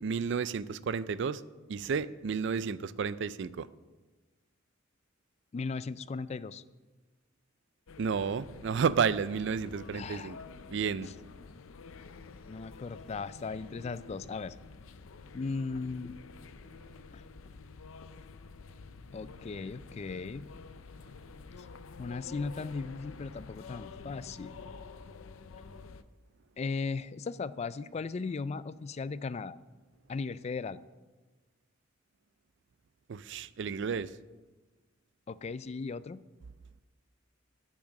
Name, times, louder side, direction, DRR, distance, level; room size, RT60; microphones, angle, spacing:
voice 1, 0.0-1.4 1.7-3.7 8.0-10.4 10.7-11.1 33.1-34.1, right 6 dB, 60° right, 16 dB, 0.4 m, -31 dB
voice 2, 5.5-6.6 9.9-10.3 12.5-14.6 15.3-16.2 17.1-17.2 19.1-20.5 22.0-24.6 26.6-29.6 30.1-30.8 35.3-36.2, left 4 dB, 35° left, 16 dB, 0.3 m, -37 dB
sound 1, 7.9-26.0, left 4 dB, 85° left, 0.5 m, -49 dB
10.5 x 6.1 x 8.2 m, 1.2 s
head